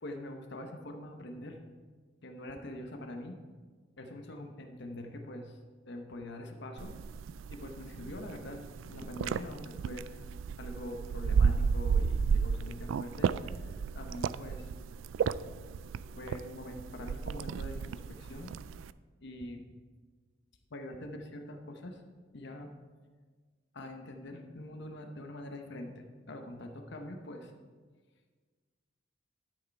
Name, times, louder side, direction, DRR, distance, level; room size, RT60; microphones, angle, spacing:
voice 1, 0.0-1.6 2.2-3.4 4.0-5.6 5.9-6.9 7.5-10.2 10.6-14.7 16.2-18.5 19.2-19.7 20.7-22.0 22.3-22.7 23.7-27.5, left 1 dB, 65° left, 4 dB, 1.0 m, -44 dB
sound 1, 6.8-18.9, right 6 dB, 80° right, 0.3 m, -33 dB
12.0 x 6.5 x 4.6 m, 1.5 s
head